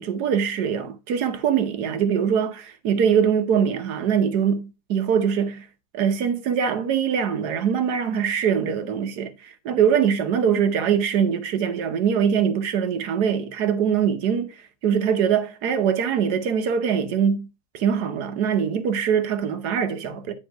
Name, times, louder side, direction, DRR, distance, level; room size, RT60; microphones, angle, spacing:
voice 1, 0.0-5.7 5.9-14.6 14.8-17.5 17.7-20.3, right 7 dB, 65° right, 1.4 m, -23 dB
9.9 x 3.6 x 4.6 m
omnidirectional pair, 1.9 m